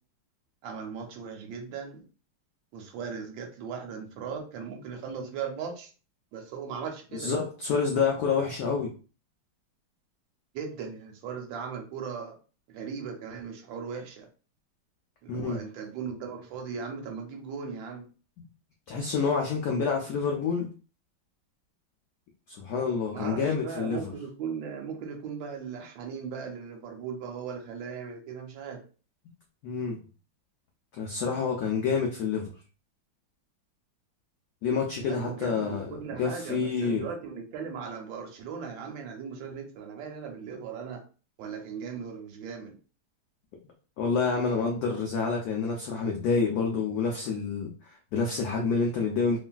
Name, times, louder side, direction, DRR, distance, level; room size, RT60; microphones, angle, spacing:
voice 1, 0.6-2.0 2.7-5.9 6.3-7.3 10.5-12.3 12.7-14.3 15.2-18.1 23.1-28.8 35.1-41.0 41.4-42.8, right 6 dB, 75° right, 3 dB, 1.3 m, -38 dB
voice 2, 7.1-8.9 15.3-15.6 18.9-20.7 22.5-24.1 29.6-30.0 30.9-32.5 34.6-35.9 36.2-37.1 44.0-49.4, left 5 dB, 90° left, 0 dB, 0.8 m, -28 dB
3.1 x 2.5 x 2.2 m, 0.37 s
omnidirectional pair, 2.2 m